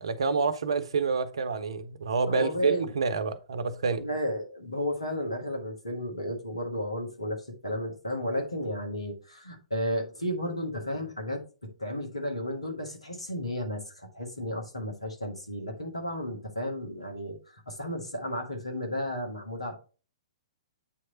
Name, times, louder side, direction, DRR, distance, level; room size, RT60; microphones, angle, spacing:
voice 1, 0.0-4.0, right 5 dB, 65° right, 0.7 m, -28 dB
voice 2, 2.3-2.9 4.0-19.8, equal, 80° left, 1.8 m, -33 dB
8.4 x 3.2 x 4.2 m
figure-of-eight pair, 115°, 3 cm